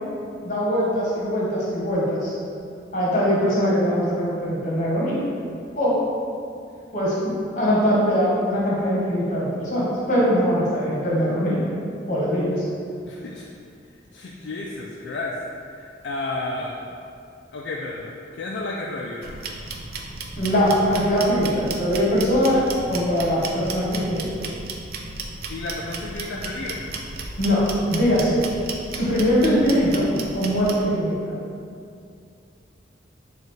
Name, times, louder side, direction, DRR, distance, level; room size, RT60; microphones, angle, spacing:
voice 1, 0.4-2.4 2.9-5.2 5.8-6.0 6.9-11.7 12.1-12.7 20.4-22.6 22.9-24.3 27.4-28.4 28.9-31.2, equal, 40° left, -6 dB, 1.1 m, -22 dB
voice 2, 13.1-13.5 14.1-15.4 15.7-16.9 17.5-19.4 25.5-26.9, left 2 dB, 65° left, -3 dB, 0.3 m, -32 dB
sound 1, 19.2-30.8, right 3 dB, 50° right, 0.3 m, -34 dB
6.5 x 2.4 x 3.1 m, 2.4 s
head